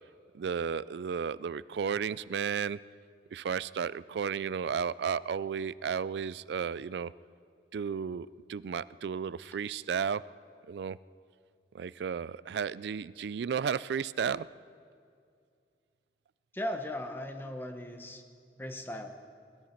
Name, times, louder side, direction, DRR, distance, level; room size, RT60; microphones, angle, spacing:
voice 1, 0.3-2.8 3.3-7.1 7.7-10.2 10.7-11.0 11.7-14.5, right 7 dB, 70° right, 18 dB, 0.3 m, -33 dB
voice 2, 16.5-18.2 18.6-19.1, left 1 dB, 10° left, 6 dB, 1.0 m, -37 dB
21.5 x 13.0 x 4.4 m, 2.3 s
head